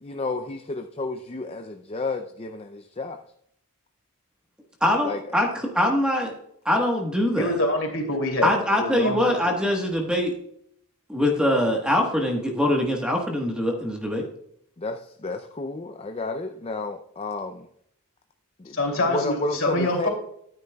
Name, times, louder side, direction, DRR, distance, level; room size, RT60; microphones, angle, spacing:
voice 1, 0.0-3.2 5.0-5.2 14.8-17.7 18.6-18.8 19.1-20.1, left 3 dB, 25° left, 0.4 m, -31 dB
voice 2, 4.8-6.3 6.6-7.5 8.4-10.3 11.1-14.2, left 1 dB, 5° right, 1.3 m, -23 dB
voice 3, 7.4-9.2 18.7-20.1, left 1 dB, 65° left, 2.8 m, -25 dB
12.5 x 9.8 x 2.3 m
head